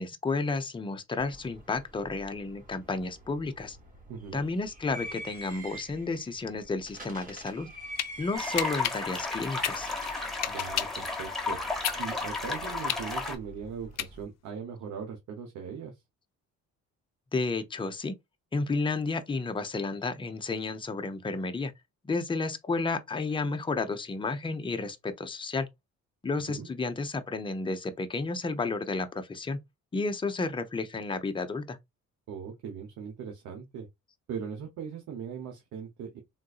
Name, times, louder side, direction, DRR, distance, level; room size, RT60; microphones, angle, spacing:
voice 1, 0.0-3.8 4.3-7.7 8.2-9.9 17.3-18.2 18.5-21.7 22.0-25.7 26.2-29.6 29.9-31.8, left 3 dB, 15° left, 0.6 m, -32 dB
sound 1, 1.2-14.2, right 2 dB, 25° right, 1.6 m, -46 dB
voice 2, 4.1-4.4 10.5-11.6 12.0-15.9 26.5-26.7 32.3-33.9 34.3-36.2, right 7 dB, 75° right, 0.9 m, -39 dB
sound 2, 7.5-8.1 8.6-11.0 11.5-14.5, left 12 dB, 60° left, 0.5 m, -33 dB
sound 3, 8.3-13.3, left 3 dB, ahead, 1.1 m, -33 dB
3.8 x 2.6 x 2.3 m
cardioid pair, 90°, 30 cm